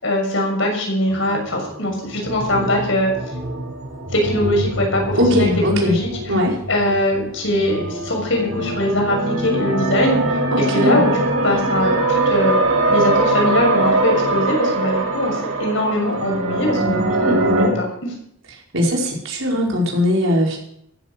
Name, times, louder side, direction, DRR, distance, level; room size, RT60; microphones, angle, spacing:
voice 1, 0.0-3.1 4.1-5.5 5.7-6.1 6.7-12.6 12.9-18.1, left 1 dB, 65° left, 1 dB, 6.7 m, -21 dB
sound 1, 1.1-17.7, right 2 dB, 85° right, 7.1 m, -22 dB
voice 2, 5.1-6.0 6.3-6.6 10.5-11.0 17.3-17.5 18.7-20.6, left 1 dB, 65° right, -2 dB, 5.3 m, -19 dB
15.0 x 13.5 x 6.2 m, 0.72 s
head